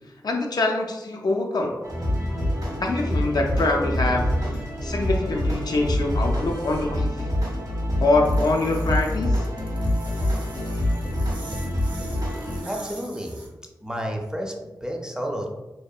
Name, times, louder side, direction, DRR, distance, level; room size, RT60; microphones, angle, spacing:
voice 1, 0.2-1.9 2.8-4.3 4.8-7.3 8.0-9.5, left 2 dB, 60° left, 1 dB, 0.4 m, -24 dB
sound 1, 1.8-12.6, left 1 dB, 75° right, 1.2 m, -26 dB
sound 2, 8.3-13.5, right 2 dB, 90° right, 0.5 m, -45 dB
voice 2, 12.2-13.4 13.8-15.5, equal, 10° right, 1 dB, 0.5 m, -31 dB
2.7 x 2.1 x 2.3 m, 1.1 s
cardioid pair, 40°, 8 cm